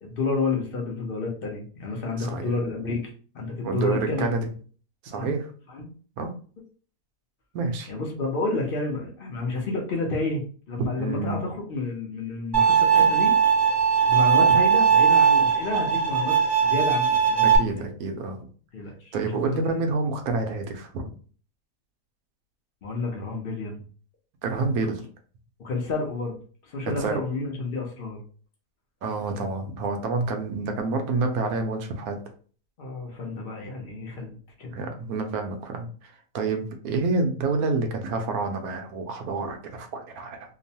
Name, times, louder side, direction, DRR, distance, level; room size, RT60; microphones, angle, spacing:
voice 1, 0.0-4.2 5.1-5.4 5.7-5.9 7.9-13.3 14.1-17.9 18.7-19.2 19.5-19.6 22.8-23.8 25.6-26.4 26.7-28.2 32.8-34.7, left 3 dB, 65° left, 0 dB, 0.5 m, -30 dB
voice 2, 2.2-2.5 3.6-4.5 5.0-5.5 6.2-6.3 7.5-7.9 11.0-11.5 17.4-18.5 19.1-21.1 24.4-25.0 26.9-27.2 29.0-32.2 34.7-40.4, right 3 dB, 70° right, 5 dB, 0.9 m, -28 dB
Bowed string instrument, 12.5-17.6, right 7 dB, 45° right, 0.6 m, -19 dB
3.0 x 2.0 x 2.7 m, 0.41 s
omnidirectional pair, 1.8 m